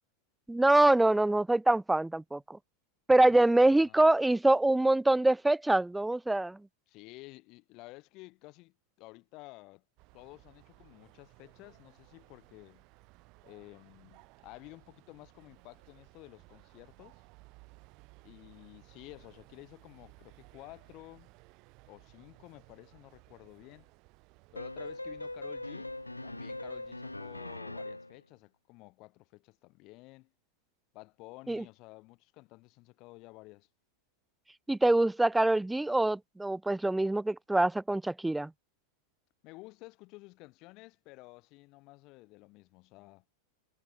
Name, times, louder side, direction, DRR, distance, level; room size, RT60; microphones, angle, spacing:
voice 1, 0.5-2.6 3.1-6.6 31.5-31.6 34.7-38.5, right 2 dB, 5° right, 0.4 m, -25 dB
voice 2, 6.9-9.8 10.1-12.9 13.4-17.2 18.2-21.3 21.9-23.9 24.5-25.9 26.2-30.3 30.9-33.7 39.4-43.3, left 23 dB, 40° left, 1.8 m, -52 dB
sound 1, 10.0-27.6, right 26 dB, 40° right, 2.5 m, -59 dB
sound 2, 24.5-28.2, left 2 dB, 85° left, 0.4 m, -41 dB
figure-of-eight pair, 90°, 0 cm